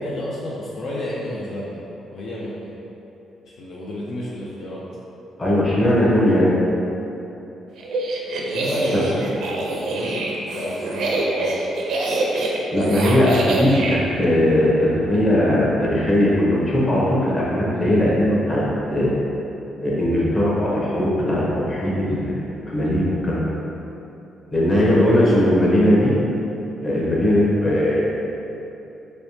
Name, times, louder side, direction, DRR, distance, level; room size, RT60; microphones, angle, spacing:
voice 1, 0.0-1.8 2.1-2.7 3.6-4.8 8.5-10.1 10.4-11.6 24.9-25.4, left 1 dB, 65° left, -6 dB, 0.5 m, -31 dB
voice 2, 5.4-6.5 8.9-9.0 12.7-19.2 19.8-23.5 24.5-26.1 26.8-28.0, left 1 dB, 30° left, -6 dB, 0.9 m, -19 dB
sound 1, 7.8-14.0, right 2 dB, 75° right, 0.5 m, -25 dB
3.2 x 3.1 x 2.8 m, 3.0 s
cardioid pair, 90°, 0 cm